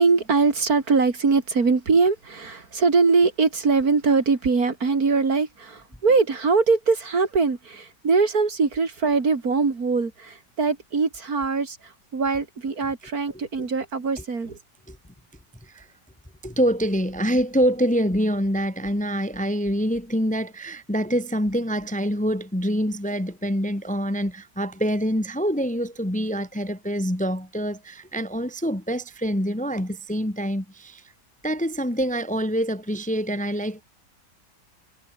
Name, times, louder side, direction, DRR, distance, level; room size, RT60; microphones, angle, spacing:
voice 1, 0.0-14.6, right 4 dB, 55° right, 3.1 m, -22 dB
voice 2, 16.4-31.0 31.4-33.8, equal, 5° left, 1.4 m, -25 dB
omnidirectional pair, 1.9 m